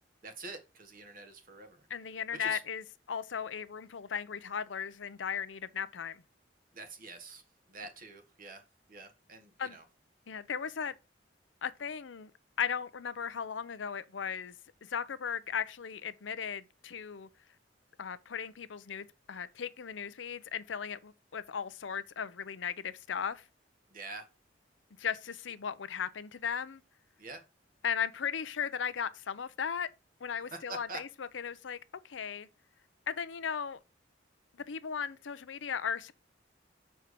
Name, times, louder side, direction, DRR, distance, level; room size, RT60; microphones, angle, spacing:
voice 1, 0.2-1.9 2.3-2.6 6.7-7.4 7.7-8.6 8.9-9.8 23.9-24.3 27.2-27.4 30.4-31.0, right 3 dB, 50° right, 1.4 m, -45 dB
voice 2, 1.9-6.2 9.6-9.8 10.3-11.0 11.6-12.3 12.6-14.5 14.8-17.3 18.0-23.4 25.0-26.8 27.8-29.9 30.2-31.8 32.0-32.5 33.1-33.8 34.7-36.1, left 7 dB, 85° left, 0.6 m, -36 dB
6.5 x 4.4 x 5.1 m
head